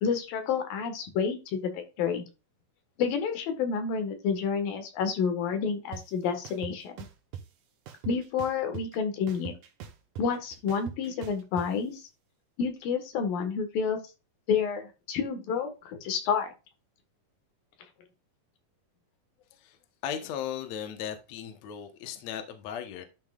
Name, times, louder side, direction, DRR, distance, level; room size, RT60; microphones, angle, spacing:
voice 1, 0.0-2.3 3.0-7.1 8.0-9.6 10.2-12.0 12.6-14.0 14.5-16.5, left 6 dB, 80° left, 3.3 m, -29 dB
sound 1, 5.9-6.0 6.4-7.4 7.9-9.0 9.3-11.7, right 8 dB, 65° right, 2.4 m, -41 dB
voice 2, 20.0-23.0, left 9 dB, 60° left, 2.1 m, -36 dB
12.0 x 5.6 x 2.4 m
omnidirectional pair, 4.0 m